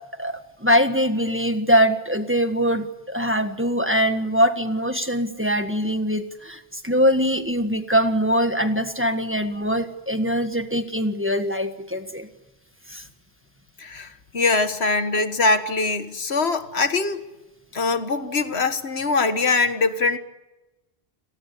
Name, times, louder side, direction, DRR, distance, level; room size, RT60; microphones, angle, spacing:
voice 1, 0.2-12.3 12.9-13.0, equal, 10° right, 1.6 m, -22 dB
voice 2, 13.8-17.2 17.7-20.2, left 3 dB, 75° left, 1.8 m, -22 dB
29.0 x 19.5 x 8.6 m
omnidirectional pair, 1.1 m